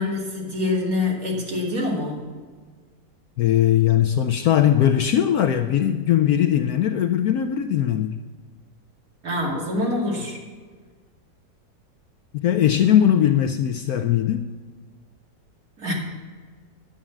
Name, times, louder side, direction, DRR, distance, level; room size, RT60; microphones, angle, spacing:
voice 1, 0.0-2.2 9.2-10.4 15.8-15.9, left 2 dB, 50° right, -3 dB, 2.9 m, -25 dB
voice 2, 3.4-8.2 12.3-14.5, left 10 dB, 70° left, 7 dB, 0.9 m, -20 dB
10.0 x 7.6 x 7.1 m, 1.5 s
omnidirectional pair, 1.9 m